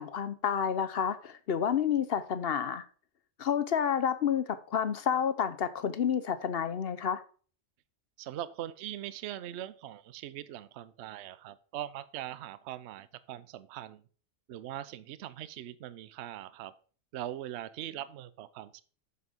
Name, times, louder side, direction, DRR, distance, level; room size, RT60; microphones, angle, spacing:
voice 1, 0.0-2.8 3.4-7.2, left 8 dB, 55° left, 12 dB, 0.8 m, -30 dB
voice 2, 8.2-14.0 14.5-16.7 17.1-18.8, right 12 dB, 65° right, 16 dB, 0.8 m, -41 dB
6.8 x 6.8 x 5.1 m, 0.41 s
omnidirectional pair, 1.3 m